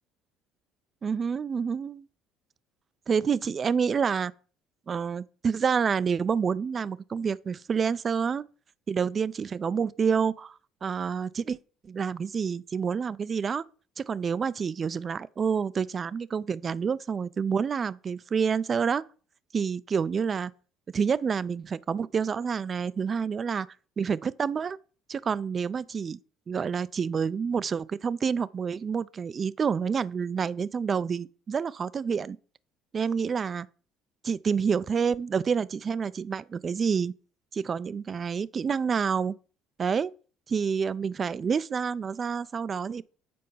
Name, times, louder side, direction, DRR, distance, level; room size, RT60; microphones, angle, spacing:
voice 1, 1.0-2.0 3.1-4.3 4.9-8.4 8.9-11.6 11.8-13.6 14.0-19.0 19.5-20.5 20.9-23.7 24.0-24.8 25.1-26.2 26.5-32.4 32.9-33.7 34.2-37.1 37.5-39.3 39.8-40.1 40.5-43.0, right 6 dB, 35° right, 0.4 m, -28 dB
7.7 x 4.5 x 5.5 m
supercardioid pair, 95°, 0 cm